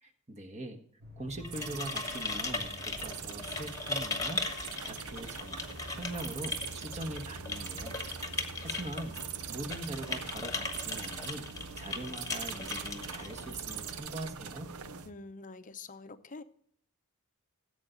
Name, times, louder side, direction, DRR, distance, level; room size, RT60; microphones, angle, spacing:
voice 1, 0.0-0.8 1.2-5.6 5.9-8.0 8.6-9.2 9.5-11.5 11.8-14.7, right 1 dB, 30° right, 1.3 m, -42 dB
sound 1, 1.0-15.1, right 1 dB, 50° right, 2.0 m, -50 dB
sound 2, 1.3-14.0, left 3 dB, 15° left, 1.2 m, -39 dB
sound 3, 1.5-15.1, right 8 dB, 80° right, 0.6 m, -43 dB
voice 2, 15.0-16.4, left 3 dB, 35° left, 0.7 m, -46 dB
16.0 x 8.1 x 3.9 m
head